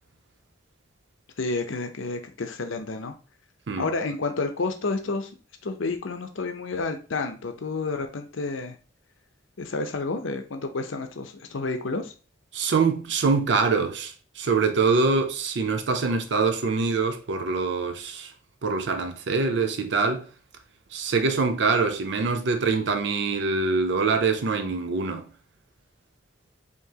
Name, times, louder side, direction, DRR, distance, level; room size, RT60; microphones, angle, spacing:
voice 1, 1.4-3.1 3.8-5.3 5.6-8.8 9.6-12.1, left 3 dB, 80° left, 0.6 m, -30 dB
voice 2, 12.5-18.3 18.6-20.3 20.9-25.3, right 4 dB, 60° right, 0.4 m, -24 dB
4.7 x 2.9 x 2.8 m
head